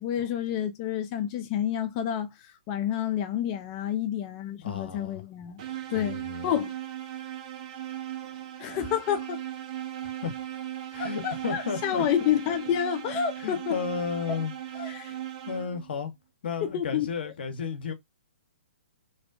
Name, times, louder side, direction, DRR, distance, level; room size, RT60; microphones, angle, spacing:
voice 1, 0.0-5.6 5.9-6.2 6.4-6.7 8.6-9.4 11.0-13.8 14.8-15.2 16.6-17.3, left 9 dB, 30° left, 0.4 m, -29 dB
voice 2, 4.6-5.2 5.9-6.6 10.0-10.3 10.9-12.1 13.4-14.5 14.8-15.0 15.4-16.1 16.4-17.9, left 6 dB, 60° left, 0.7 m, -33 dB
sound 1, 5.6-15.9, right 12 dB, 35° right, 0.4 m, -38 dB
2.6 x 2.1 x 2.3 m
figure-of-eight pair, 130°, 6 cm